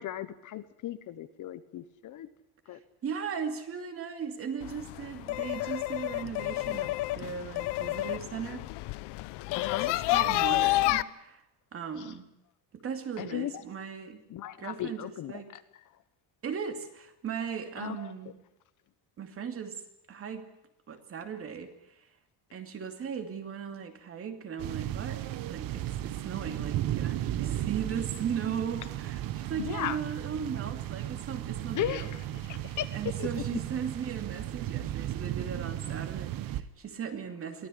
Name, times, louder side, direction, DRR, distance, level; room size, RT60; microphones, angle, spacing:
voice 1, 0.0-2.3 2.7-2.8 9.6-9.9 12.0-12.2 13.2-13.6 14.3-15.8 17.8-18.1 29.6-30.0 31.7-33.6, left 12 dB, 45° left, 13 dB, 1.1 m, -37 dB
voice 2, 3.0-8.7 9.9-11.4 11.7-12.3 12.7-14.2 14.6-15.5 16.4-18.3 19.2-19.8 20.1-20.4 20.9-22.0 22.5-32.1 32.9-37.7, right 7 dB, 30° right, 6 dB, 2.6 m, -37 dB
sound 1, 4.6-11.0, left 18 dB, 70° left, 0.9 m, -30 dB
sound 2, 24.6-36.6, right 13 dB, 55° right, 1.2 m, -35 dB
23.0 x 15.5 x 9.9 m, 0.83 s
cardioid pair, 175°, 42 cm